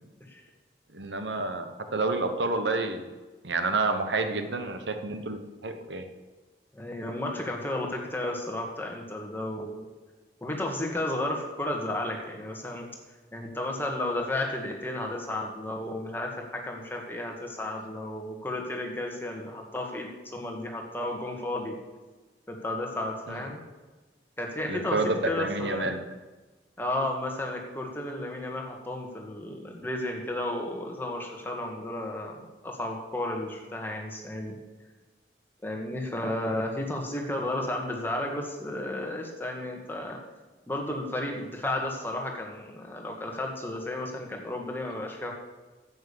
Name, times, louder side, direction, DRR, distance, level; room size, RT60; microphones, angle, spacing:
voice 1, 0.9-3.1 3.4-6.0 23.3-23.4 24.7-26.0, right 3 dB, 85° right, 8 dB, 1.1 m, -29 dB
voice 2, 6.7-9.8 10.4-12.9 13.3-21.8 22.5-23.6 24.4-25.9 26.8-34.5 35.6-40.2 40.7-45.3, left 1 dB, 10° left, 1 dB, 1.7 m, -33 dB
9.6 x 8.4 x 7.0 m, 1.2 s
head